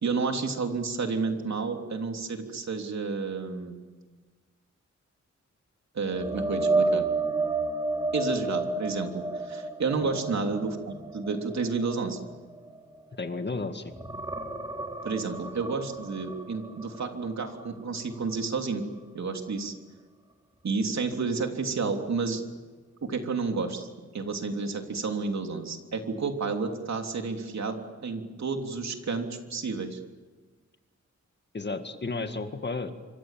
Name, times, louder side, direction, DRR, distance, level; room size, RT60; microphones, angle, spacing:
voice 1, 0.0-3.8 5.9-7.1 8.1-12.2 15.0-18.9 19.1-19.7 20.6-22.4 23.0-23.9 24.1-30.0, right 4 dB, 70° right, 4 dB, 3.3 m, -31 dB
sound 1, 6.1-13.5 13.9-17.7 18.1-18.3 21.7-21.8, right 3 dB, 15° right, 3.5 m, -31 dB
voice 2, 13.1-13.9 31.5-32.9, left 3 dB, 35° left, 7 dB, 2.0 m, -33 dB
28.0 x 25.5 x 7.6 m, 1.4 s
wide cardioid pair, 130°, 29 cm